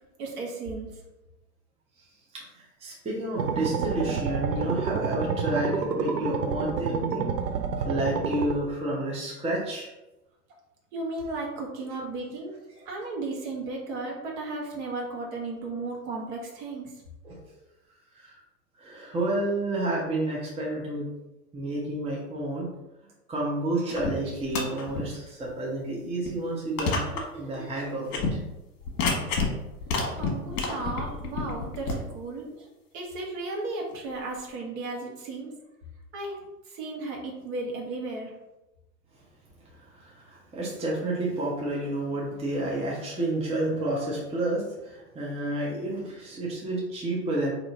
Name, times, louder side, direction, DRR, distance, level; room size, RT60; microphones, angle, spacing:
voice 1, 0.2-0.9 10.9-12.5 12.8-16.9 30.2-32.7 32.9-35.5 36.1-36.4 36.6-38.3, right 2 dB, 45° right, -1 dB, 1.4 m, -34 dB
voice 2, 2.3-7.3 7.8-9.9 17.2-17.4 18.1-18.3 18.8-21.1 21.5-22.7 23.3-28.2 39.8-47.5, right 1 dB, 15° right, -5 dB, 0.9 m, -30 dB
sound 1, 3.4-8.5, right 5 dB, 85° right, 0.7 m, -29 dB
sound 2, 23.9-24.1 24.4-25.0 25.5-25.6 26.3-26.4 26.8-27.2 27.5-27.6 28.1-28.3 28.8-29.5 29.8-31.9, left 4 dB, 45° left, 1.3 m, -29 dB
4.1 x 2.9 x 3.9 m, 0.99 s
hypercardioid pair, 105°, 47 cm